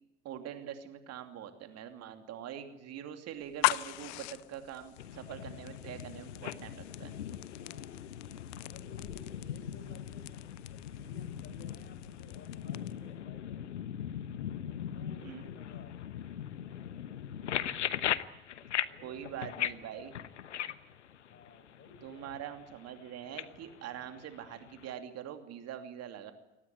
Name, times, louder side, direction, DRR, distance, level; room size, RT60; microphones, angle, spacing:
voice 1, 0.2-7.2 15.2-15.4 19.0-20.1 22.0-26.3, right 9 dB, 45° right, 7 dB, 2.8 m, -44 dB
voice 2, 2.9-3.5 7.1-8.1 8.6-13.7 14.9-16.3 18.8-19.3 21.2-22.3, left 3 dB, 30° left, 10 dB, 5.1 m, -57 dB
sound 1, 3.4-13.1, left 21 dB, 50° left, 0.8 m, -40 dB
sound 2, 5.0-24.9, left 10 dB, 80° left, 1.0 m, -40 dB
23.5 x 18.5 x 9.7 m, 0.95 s
figure-of-eight pair, 65°, 35 cm